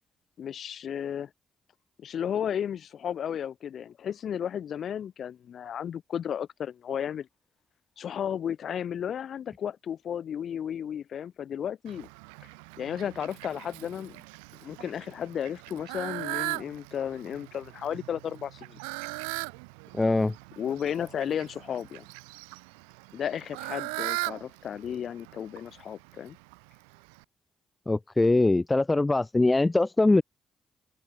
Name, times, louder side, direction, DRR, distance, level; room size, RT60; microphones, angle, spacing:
voice 1, 0.4-1.3 2.0-7.3 8.0-12.1 12.8-14.2 14.5-18.8 20.6-22.1 23.1-26.4, left 9 dB, 60° left, 5.3 m, -34 dB
Fowl, 11.9-27.2, right 38 dB, 80° right, 1.1 m, -40 dB
voice 2, 19.9-20.3 27.9-30.2, left 2 dB, 20° left, 0.6 m, -22 dB
open air
hypercardioid pair, 40°, 0 cm